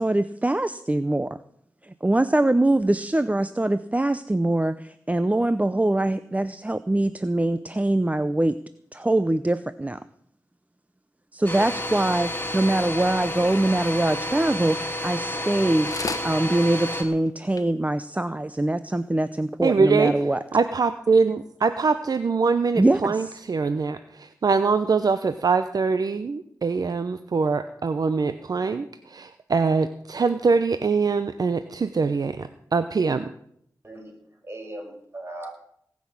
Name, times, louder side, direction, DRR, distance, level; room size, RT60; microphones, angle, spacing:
voice 1, 0.0-1.4 1.8-8.6 8.9-10.0 11.3-20.4 22.7-23.4, right 1 dB, 20° right, 13 dB, 0.6 m, -23 dB
Domestic sounds home sounds, 11.5-17.0, left 1 dB, 25° left, 2.7 m, -30 dB
sound 1, 15.4-15.6 15.8-16.3 16.9-17.0 17.3-17.4 17.5-17.6 18.3-18.4, left 4 dB, 55° left, 1.1 m, -32 dB
voice 2, 19.6-20.1 20.5-33.3, right 4 dB, 65° right, 10 dB, 0.7 m, -23 dB
voice 3, 34.4-35.5, right 1 dB, 35° right, 1 dB, 5.7 m, -38 dB
19.0 x 6.3 x 8.7 m, 0.69 s
cardioid pair, 50°, 7 cm